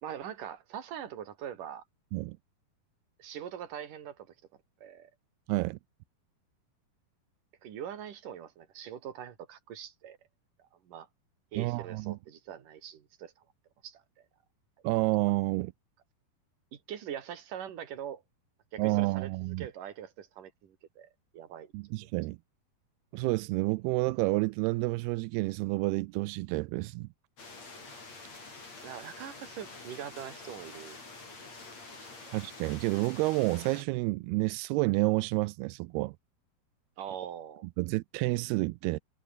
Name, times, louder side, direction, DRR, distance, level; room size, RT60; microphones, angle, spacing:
voice 1, 0.0-1.8 3.2-4.3 4.8-5.1 7.6-10.2 10.9-11.1 11.5-13.3 13.8-14.0 16.7-18.2 18.7-21.7 22.0-22.1 28.8-31.0 31.9-32.1 37.0-37.7, right 9 dB, 60° right, 3.8 m, -42 dB
voice 2, 5.5-5.8 11.6-12.2 14.8-15.7 18.8-19.7 21.7-22.4 23.1-27.1 32.3-36.2 37.8-39.0, right 22 dB, 90° right, 2.6 m, -29 dB
sound 1, 27.4-33.8, left 3 dB, 45° left, 8.3 m, -47 dB
omnidirectional pair, 4.5 m